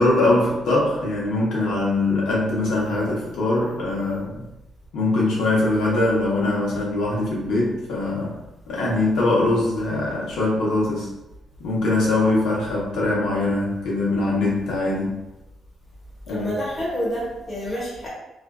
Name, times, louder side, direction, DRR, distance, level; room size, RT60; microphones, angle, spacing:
voice 1, 0.0-4.5 4.9-8.4 8.7-11.1 11.6-15.2 16.3-16.5, left 2 dB, 90° left, -4 dB, 0.8 m, -22 dB
voice 2, 16.3-18.1, equal, 30° left, -5 dB, 1.1 m, -28 dB
2.5 x 2.3 x 2.2 m, 0.98 s
cardioid pair, 100°, 0 cm